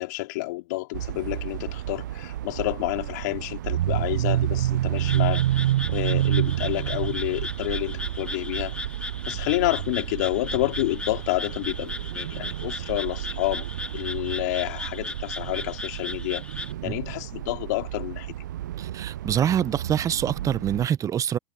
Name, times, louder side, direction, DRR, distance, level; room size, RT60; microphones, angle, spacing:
voice 1, 0.0-5.4 5.9-8.7 9.3-13.6 13.9-16.4 16.8-18.3, left 20 dB, 70° left, 3.0 m, -29 dB
sound 1, 0.9-20.9, right 13 dB, 80° right, 0.4 m, -30 dB
Frog, 5.0-16.7, left 2 dB, 10° left, 2.8 m, -37 dB
voice 2, 18.8-21.4, right 9 dB, 35° right, 0.9 m, -25 dB
hypercardioid pair, 85°, 10 cm